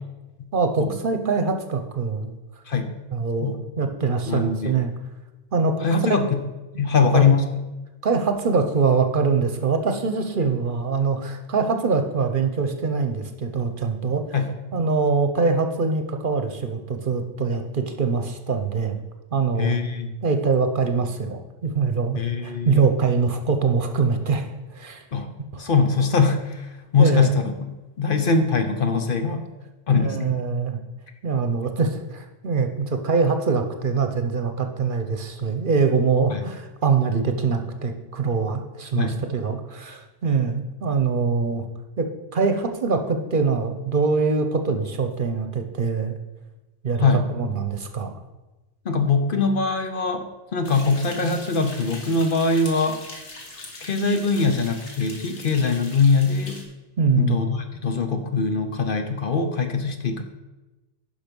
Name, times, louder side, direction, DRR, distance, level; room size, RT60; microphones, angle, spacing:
voice 1, 0.5-2.4 3.1-3.5 3.8-4.9 5.5-5.9 6.9-7.3 8.0-14.2 14.7-19.0 19.3-19.7 20.2-25.0 25.5-25.6 27.0-27.3 29.9-30.8 31.2-41.6 42.0-46.2 46.8-48.1 57.0-57.4, right 4 dB, 50° right, 6 dB, 0.9 m, -23 dB
voice 2, 4.3-4.8 5.8-6.4 6.8-7.5 14.3-14.5 19.6-20.1 22.1-22.8 25.1-25.3 25.6-27.5 28.0-29.4 29.9-30.3 36.3-36.5 39.0-39.2 47.0-47.2 48.8-50.2 50.5-53.0 53.8-56.6 57.2-60.2, left 4 dB, 55° left, 6 dB, 1.0 m, -22 dB
sound 1, 50.6-56.6, left 2 dB, 80° left, 1.9 m, -41 dB
10.5 x 5.8 x 5.3 m, 1.1 s
omnidirectional pair, 1.1 m